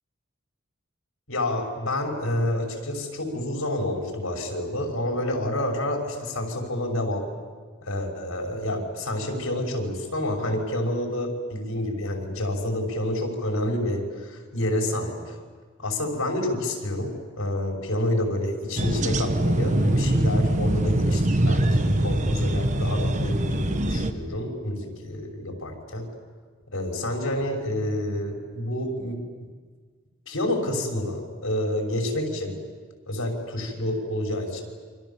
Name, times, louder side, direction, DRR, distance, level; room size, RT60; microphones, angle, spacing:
voice 1, 1.3-7.2 7.8-15.2 15.8-26.1 26.7-29.2 30.3-32.5 33.1-34.6, left 1 dB, 85° left, 1 dB, 5.9 m, -28 dB
sound 1, 18.8-24.1, right 1 dB, 35° right, 1.2 m, -23 dB
28.5 x 26.0 x 7.4 m, 1.5 s
head